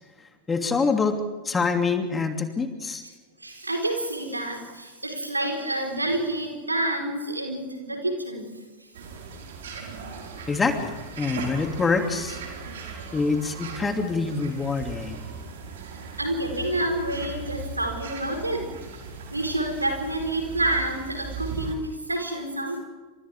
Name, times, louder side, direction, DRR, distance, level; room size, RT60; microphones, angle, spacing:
voice 1, 0.5-1.2 1.4-3.0 10.5-12.4 13.1-15.2, left 4 dB, 15° left, 5 dB, 2.8 m, -25 dB
voice 2, 3.4-8.6 9.7-9.8 16.2-18.7 19.3-22.8, right 1 dB, 85° right, 2 dB, 4.6 m, -28 dB
sound 1, 8.9-21.8, right 5 dB, 60° right, 5.0 m, -38 dB
29.5 x 26.5 x 3.7 m, 1.3 s
figure-of-eight pair, 90°, 0 cm